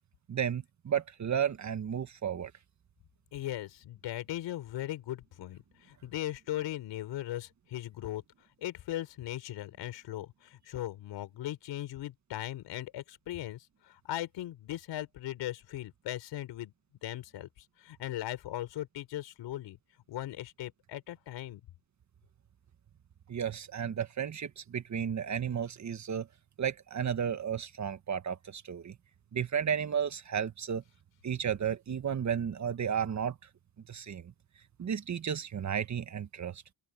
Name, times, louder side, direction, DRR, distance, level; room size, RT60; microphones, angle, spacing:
voice 1, 0.3-2.5 23.3-26.3 26.6-29.0 29.3-30.8 31.2-33.4 33.9-34.3 34.8-36.6, right 8 dB, 40° right, 1.6 m, -33 dB
voice 2, 3.3-8.2 8.6-16.7 17.0-19.8 20.1-21.6, left 14 dB, 80° left, 4.9 m, -38 dB
cardioid pair, 105°, 42 cm